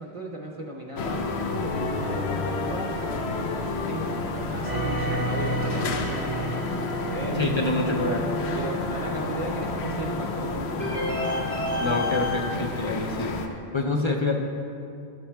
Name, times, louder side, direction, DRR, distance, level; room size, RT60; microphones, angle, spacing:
voice 1, 0.0-2.9 3.9-4.2 4.5-8.2 8.5-11.2, right 2 dB, 40° right, -1 dB, 0.6 m, -36 dB
sound 1, 1.0-13.5, left 2 dB, 75° left, 0.9 m, -30 dB
sound 2, 4.6-8.8 10.8-12.4, equal, 20° left, 1.3 m, -31 dB
voice 2, 7.4-8.3 11.8-13.4 13.7-14.4, left 2 dB, 45° left, 2 dB, 0.4 m, -26 dB
13.0 x 8.5 x 2.2 m, 2.6 s
omnidirectional pair, 1.1 m